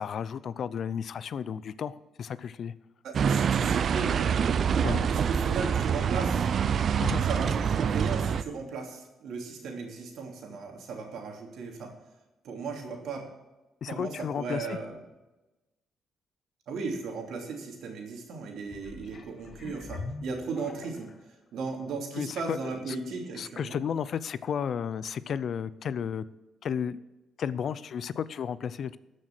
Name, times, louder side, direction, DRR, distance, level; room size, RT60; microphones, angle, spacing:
voice 1, 0.0-2.7 4.8-5.0 7.0-7.2 13.8-14.8 22.1-23.0 23.4-26.2 26.6-27.0 27.4-29.0, left 7 dB, 60° left, 17 dB, 0.5 m, -33 dB
voice 2, 3.0-4.4 4.8-6.5 7.2-12.0 12.4-13.2 13.9-15.0 16.7-21.1 21.5-23.8, right 4 dB, 75° right, 2 dB, 2.8 m, -36 dB
sound 1, 3.1-8.4, right 7 dB, 55° right, 0.5 m, -26 dB
sound 2, 18.6-21.3 21.9-22.0, left 3 dB, 40° left, 1.4 m, -43 dB
13.5 x 6.5 x 6.1 m, 1.1 s
cardioid pair, 90°, 0 cm